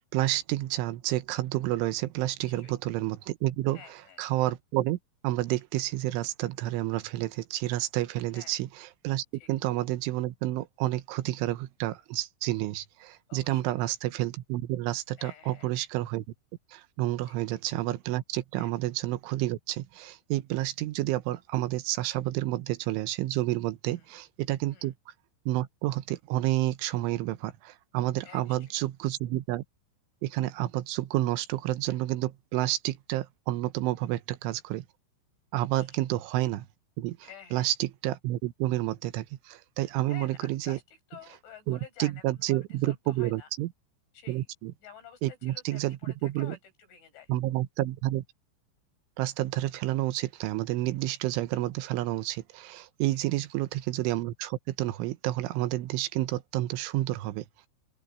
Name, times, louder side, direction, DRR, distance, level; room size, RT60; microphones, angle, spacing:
voice 1, 0.1-5.0 5.2-16.3 16.7-24.9 25.5-29.6 30.2-34.9 35.5-36.7 37.0-40.8 41.7-43.7 44.3-44.7 45.2-46.6 47.3-48.2 49.2-57.7, right 16 dB, 80° right, 3.2 m, -30 dB
voice 2, 2.4-2.7 3.7-4.2 8.3-8.5 9.3-9.5 13.3-13.7 15.2-15.7 17.3-17.4 18.6-18.7 23.9-24.1 24.7-24.9 28.2-28.6 34.0-34.1 37.2-37.7 40.1-43.5 44.1-44.5 44.8-46.6 46.9-47.3 53.1-53.5, left 8 dB, 65° left, 7.6 m, -50 dB
open air
omnidirectional pair, 5.8 m